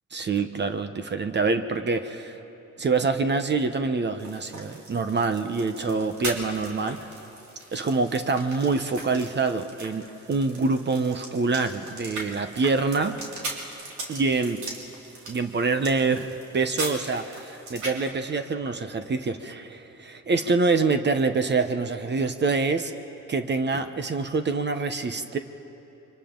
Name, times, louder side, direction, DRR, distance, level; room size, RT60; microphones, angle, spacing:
voice 1, 0.1-2.4 2.8-7.1 7.7-13.2 14.1-14.6 15.3-22.9 23.3-25.4, right 4 dB, 35° right, 8 dB, 1.0 m, -26 dB
sound 1, 4.2-18.1, right 2 dB, 75° right, 3.3 m, -39 dB
29.5 x 24.0 x 3.9 m, 3.0 s
cardioid pair, 90°, 30 cm